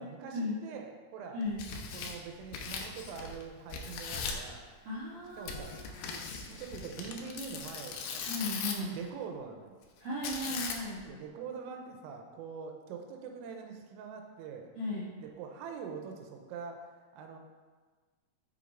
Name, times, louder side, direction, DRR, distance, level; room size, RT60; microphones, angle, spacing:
voice 1, 0.0-1.4 1.9-4.6 5.4-5.9 6.5-8.3 8.9-9.8 11.1-14.7 15.2-17.4, right 6 dB, 85° right, 3 dB, 3.4 m, -44 dB
Tearing, 1.4-3.4 3.7-4.5 5.5-9.0 10.2-11.0, left 5 dB, 85° left, 2.4 m, -39 dB
voice 2, 4.8-6.2 8.2-8.9 10.0-11.0 14.7-15.0, left 1 dB, 60° right, -10 dB, 1.5 m, -36 dB
7.7 x 6.4 x 4.6 m, 1.4 s
omnidirectional pair, 6.0 m